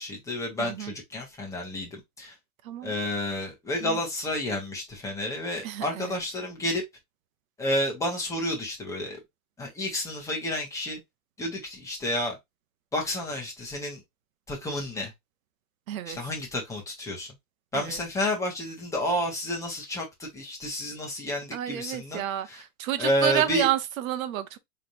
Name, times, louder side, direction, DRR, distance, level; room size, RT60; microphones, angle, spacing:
voice 1, 0.0-2.3 2.8-6.8 7.6-9.2 9.6-11.0 11.4-12.4 12.9-14.0 14.5-15.1 16.1-17.3 17.7-22.2 22.5-22.6 23.0-23.7, left 1 dB, 5° left, 1.2 m, -30 dB
voice 2, 0.6-0.9 2.6-2.9 3.8-4.0 5.6-6.2 15.9-16.2 17.7-18.0 21.5-24.6, right 12 dB, 65° right, 0.9 m, -30 dB
4.1 x 3.3 x 2.6 m
supercardioid pair, 160°, 44 cm